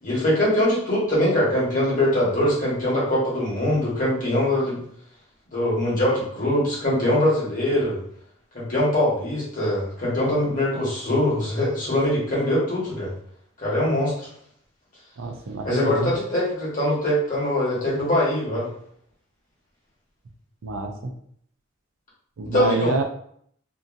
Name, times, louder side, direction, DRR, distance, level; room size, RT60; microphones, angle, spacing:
voice 1, 0.0-4.8 5.5-8.0 8.5-13.1 13.6-14.1 15.6-18.7 22.5-22.9, left 1 dB, 40° left, -6 dB, 1.3 m, -22 dB
voice 2, 15.2-16.1 20.6-21.1 22.4-23.0, right 3 dB, 80° right, 4 dB, 0.5 m, -27 dB
2.8 x 2.5 x 2.5 m, 0.65 s
head